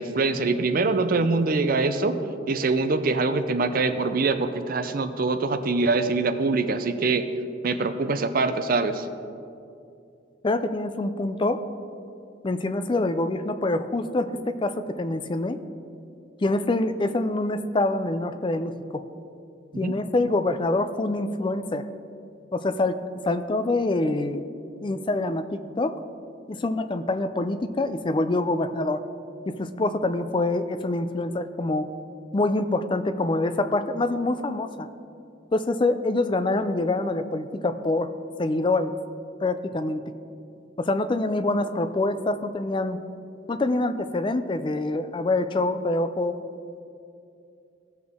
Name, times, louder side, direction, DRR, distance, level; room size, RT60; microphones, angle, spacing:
voice 1, 0.0-2.2 2.5-7.2 7.6-9.1 19.8-20.0, right 3 dB, 50° right, 9 dB, 0.5 m, -24 dB
voice 2, 10.4-11.6 12.4-15.6 16.4-19.0 19.8-21.9 22.5-23.0 23.2-24.4 24.8-26.0 26.5-29.0 29.5-31.9 32.3-34.9 35.5-38.1 38.4-38.9 39.4-40.0 40.8-43.0 43.5-46.4, left 2 dB, 25° left, 10 dB, 0.4 m, -25 dB
16.0 x 6.0 x 3.6 m, 2.5 s
head